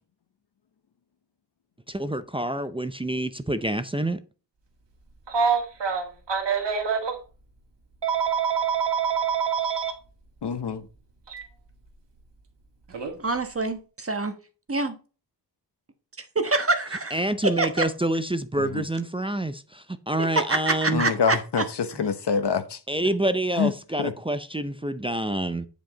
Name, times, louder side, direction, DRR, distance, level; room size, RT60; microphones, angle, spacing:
voice 1, 1.9-4.2 17.1-21.1 22.9-25.7, right 1 dB, 15° right, 0.5 m, -27 dB
Telephone, 5.3-7.2 8.0-9.9 11.3-11.4 12.9-13.1, right 6 dB, 75° right, 1.9 m, -25 dB
voice 2, 10.4-10.9 18.6-18.8 20.9-22.8 23.6-23.7 24.0-24.1, left 6 dB, 70° left, 1.0 m, -26 dB
voice 3, 13.2-14.3 14.7-15.0 16.3-17.2 17.4-17.8 20.2-21.4 21.9-22.0, right 3 dB, 30° right, 1.2 m, -26 dB
9.2 x 5.2 x 3.9 m
wide cardioid pair, 100°, 43 cm